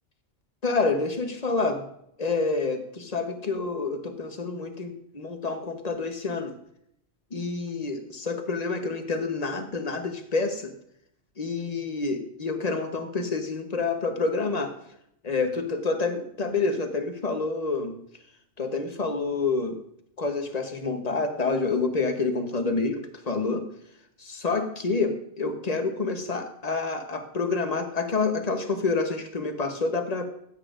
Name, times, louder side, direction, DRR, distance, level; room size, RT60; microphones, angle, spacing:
voice 1, 0.6-1.9 2.2-6.5 7.3-10.7 11.4-14.7 15.2-18.0 18.6-19.8 20.2-23.7 24.2-30.3, left 3 dB, 40° left, 6 dB, 1.1 m, -28 dB
15.0 x 8.6 x 2.5 m, 0.72 s
omnidirectional pair, 1.1 m